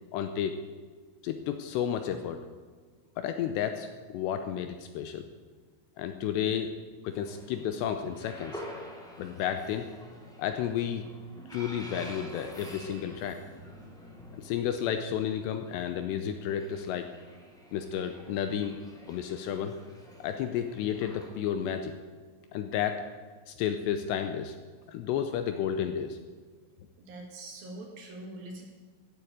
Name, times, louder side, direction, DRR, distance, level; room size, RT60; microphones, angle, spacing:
voice 1, 0.1-0.6 1.2-2.4 3.2-5.3 6.0-6.7 7.0-8.6 9.2-9.9 10.4-11.0 11.5-13.4 14.4-17.1 17.7-18.8 19.1-19.8 20.2-21.9 22.5-23.0 23.5-24.6 24.9-26.2, left 9 dB, 80° left, 8 dB, 2.6 m, -32 dB
sound 1, 7.1-21.3, equal, ahead, 0.9 m, -48 dB
voice 2, 27.0-28.7, right 2 dB, 60° right, 1 dB, 3.3 m, -43 dB
14.0 x 8.1 x 8.7 m, 1.5 s
omnidirectional pair, 5.4 m